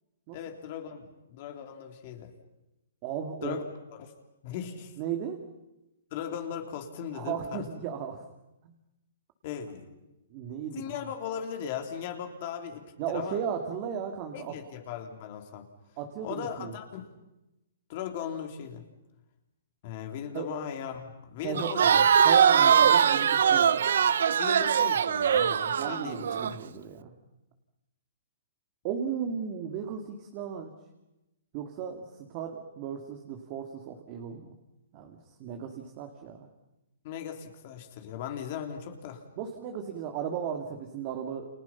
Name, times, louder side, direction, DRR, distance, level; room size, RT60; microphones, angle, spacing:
voice 1, 0.3-2.3 3.4-3.7 4.0-4.1 4.4-4.9 6.1-7.7 9.4-9.9 10.7-13.4 14.3-15.7 16.2-17.1 17.9-18.8 19.8-22.1 24.4-26.6 37.0-39.2, left 8 dB, 40° left, 4 dB, 3.2 m, -38 dB
voice 2, 3.0-3.6 5.0-5.4 7.1-8.2 8.6-8.7 10.3-11.0 13.0-14.5 16.0-16.7 20.3-20.6 21.4-21.8 22.2-23.8 25.8-27.1 28.8-30.7 31.5-34.5 34.9-36.5 39.4-41.5, right 8 dB, 35° right, 4 dB, 2.4 m, -35 dB
Crowd, 21.6-26.5, right 8 dB, 70° right, 0.8 m, -22 dB
29.5 x 28.0 x 5.9 m, 0.97 s
hypercardioid pair, 155°, 0 cm